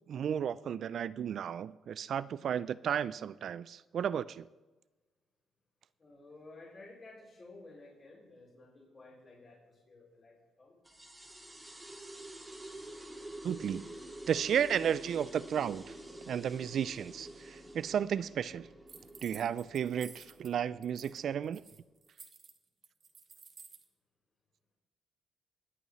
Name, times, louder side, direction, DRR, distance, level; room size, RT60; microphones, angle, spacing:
voice 1, 0.1-4.5 13.4-13.9 14.3-16.0 16.3-18.7 19.2-21.6, right 8 dB, 60° right, 0.3 m, -33 dB
voice 2, 6.0-10.8, left 2 dB, 40° left, 3.8 m, -54 dB
sound 1, 10.8-21.9, right 1 dB, 10° right, 2.0 m, -49 dB
sound 2, 18.9-20.5 20.8-21.2 21.4-23.8, right 5 dB, 45° right, 1.3 m, -53 dB
22.5 x 8.3 x 3.1 m
cardioid pair, 90°, 0 cm